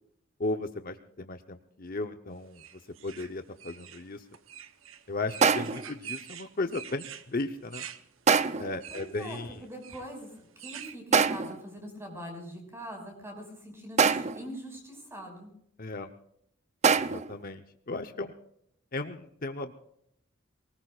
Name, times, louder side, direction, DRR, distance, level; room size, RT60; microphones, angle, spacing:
voice 1, 0.4-2.6 3.0-4.2 5.1-7.9 8.6-9.5 15.8-16.1 16.9-18.3 18.9-19.7, left 2 dB, 45° left, 7 dB, 0.8 m, -35 dB
sound 1, 2.5-11.0, right 9 dB, 80° right, 0.9 m, -46 dB
sound 2, 5.4-5.9 8.3-8.8 11.1-11.7 14.0-14.6 16.8-17.4, right 6 dB, 35° right, 0.5 m, -24 dB
voice 2, 8.9-15.5, equal, 15° right, 2 dB, 5.4 m, -43 dB
23.5 x 19.5 x 2.4 m, 0.72 s
head